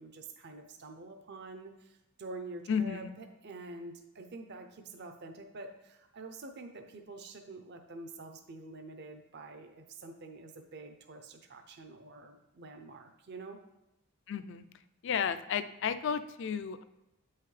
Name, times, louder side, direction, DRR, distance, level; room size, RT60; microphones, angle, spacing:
voice 1, 0.0-13.6, right 3 dB, 50° right, 6 dB, 0.6 m, -47 dB
voice 2, 2.7-3.1 14.3-14.6 15.0-16.8, left 7 dB, 55° left, 12 dB, 0.4 m, -33 dB
8.3 x 5.7 x 3.2 m, 0.96 s
head